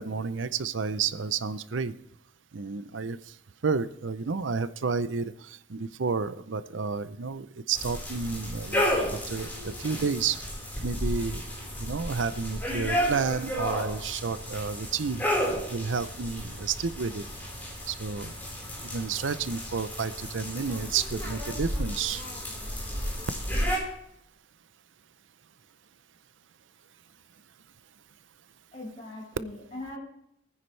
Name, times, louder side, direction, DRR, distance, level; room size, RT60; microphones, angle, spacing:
voice 1, 0.0-1.9 2.5-3.4 3.6-10.4 10.8-11.4 11.8-15.2 15.7-17.2 17.9-18.4 18.8-22.2, right 5 dB, 80° right, 14 dB, 0.6 m, -31 dB
sound 1, 7.7-23.8, equal, 10° left, 4.4 m, -32 dB
voice 2, 9.5-10.0 28.7-30.0, left 2 dB, 35° left, -1 dB, 5.4 m, -41 dB
20.5 x 9.7 x 3.3 m, 0.74 s
head